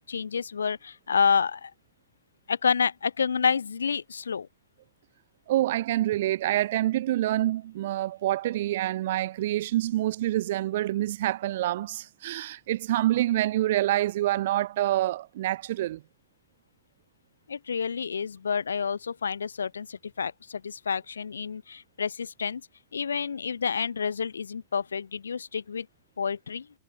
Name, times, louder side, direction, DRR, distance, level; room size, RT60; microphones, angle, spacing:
voice 1, 0.0-1.7 2.5-4.5 17.5-22.6 22.9-25.9 26.2-26.7, left 6 dB, 70° left, 0.9 m, -29 dB
voice 2, 5.5-16.0, right 14 dB, 55° right, 0.8 m, -27 dB
figure-of-eight pair, 90°, 0 cm